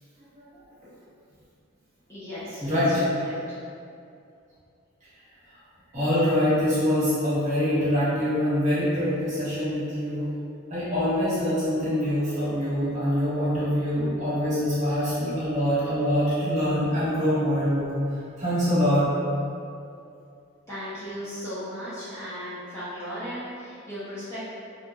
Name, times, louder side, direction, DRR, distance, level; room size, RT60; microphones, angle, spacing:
voice 1, 2.1-3.3 20.7-24.4, equal, 15° left, -14 dB, 0.5 m, -36 dB
voice 2, 2.6-3.0 5.5-5.6 5.9-10.3 10.7-18.0 18.4-19.1, equal, 35° right, -13 dB, 1.1 m, -24 dB
2.8 x 2.3 x 2.2 m, 2.5 s
head